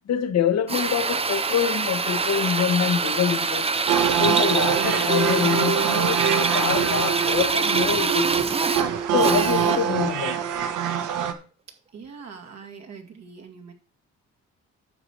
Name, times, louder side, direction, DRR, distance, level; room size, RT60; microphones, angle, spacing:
voice 1, 0.1-3.7 4.2-8.5 9.1-10.4, left 8 dB, 60° left, 1.1 m, -25 dB
Drill, 0.7-10.0, right 4 dB, 20° right, 0.6 m, -25 dB
sound 1, 3.9-11.3, right 8 dB, 85° right, 1.3 m, -24 dB
voice 2, 11.9-13.7, right 5 dB, 60° right, 2.4 m, -42 dB
9.7 x 6.6 x 4.5 m
cardioid pair, 90°, 30 cm